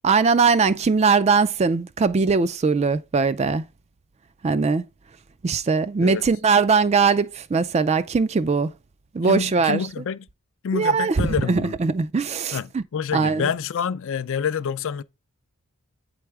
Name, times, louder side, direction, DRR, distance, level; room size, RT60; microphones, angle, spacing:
voice 1, 0.0-3.7 4.4-4.8 5.4-8.7 9.1-10.0 10.7-12.8 13.1-13.5, right 4 dB, 30° right, 0.3 m, -21 dB
voice 2, 9.3-10.3 10.6-11.7 12.5-15.0, left 7 dB, 60° left, 0.4 m, -27 dB
8.5 x 3.3 x 4.7 m
head